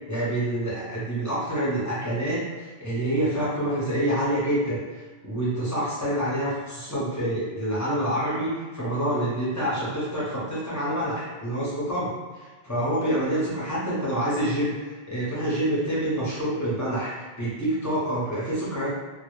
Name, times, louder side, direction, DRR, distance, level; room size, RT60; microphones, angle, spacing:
voice 1, 0.1-12.1 12.6-19.0, right 1 dB, 25° left, -9 dB, 0.5 m, -27 dB
2.0 x 2.0 x 3.0 m, 1.4 s
omnidirectional pair, 1.1 m